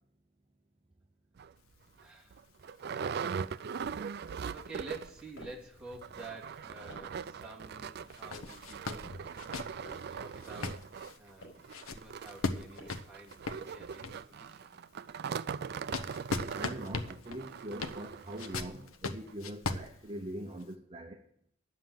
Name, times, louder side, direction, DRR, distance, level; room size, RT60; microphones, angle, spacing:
sound 1, 1.4-1.5 2.0-2.1 2.3-5.3 5.5-5.6 5.9-18.7 19.3-19.4 19.7-19.8, right 6 dB, 50° right, 0.3 m, -41 dB
sound 2, 1.6-6.9 7.3-7.4 8.0-14.4 14.9-20.7, left 3 dB, 85° left, 0.9 m, -41 dB
voice 1, 2.0-2.4 4.5-10.8 11.2-14.8, right 2 dB, 5° right, 2.5 m, -50 dB
sound 3, 4.9-5.7 6.4-7.3 7.9-8.6 9.3-10.2 10.9-11.7 12.4-13.2, equal, 70° left, 5.3 m, -55 dB
voice 2, 16.3-21.2, right 1 dB, 30° right, 0.7 m, -43 dB
10.0 x 7.5 x 7.7 m
head